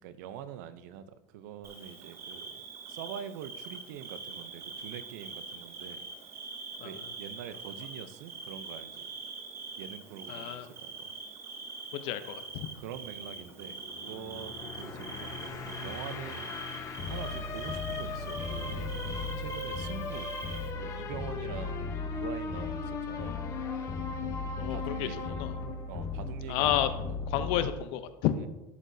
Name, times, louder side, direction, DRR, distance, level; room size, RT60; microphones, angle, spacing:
voice 1, 0.0-2.6 2.9-6.1 6.8-9.1 9.8-11.1 12.0-12.2 12.8-16.5 17.1-18.9 19.4-20.4 20.8-23.4 24.7-25.4 25.9-27.2 28.3-28.5, right 9 dB, 85° right, 12 dB, 0.6 m, -44 dB
Bird / Cricket, 1.6-20.7, right 4 dB, 30° right, 1.0 m, -44 dB
voice 2, 10.3-10.7 11.9-12.7 24.6-25.5 26.5-26.9 27.3-28.3, left 12 dB, 65° left, 11 dB, 0.7 m, -31 dB
sound 1, 12.5-27.7, left 4 dB, 35° left, 0.9 m, -37 dB
sound 2, 14.8-22.3, right 3 dB, 5° right, 2.8 m, -49 dB
11.5 x 6.5 x 2.7 m, 1.0 s
cardioid pair, 145°, 10 cm